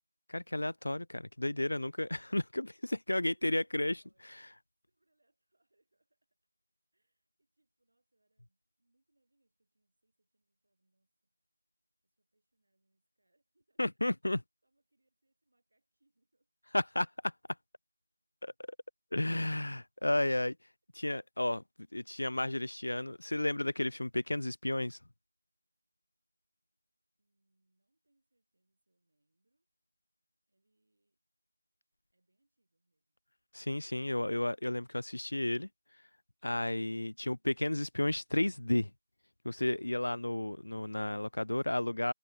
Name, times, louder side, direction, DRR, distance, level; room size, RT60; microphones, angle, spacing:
voice 1, 0.3-4.0 13.8-14.4 16.7-17.3 18.4-18.5 19.1-20.6 20.9-21.6 21.9-25.0 33.5-35.7 36.4-38.9 39.4-42.1, left 1 dB, 60° left, 0.3 m, -32 dB
voice 2, 3.4-4.6 4.9-6.4 6.9-11.3 12.0-14.0 14.6-16.5 27.2-29.7 30.5-31.2 32.1-33.2, right 2 dB, 50° right, 7.9 m, -80 dB
figure-of-eight pair, 175°, 0 cm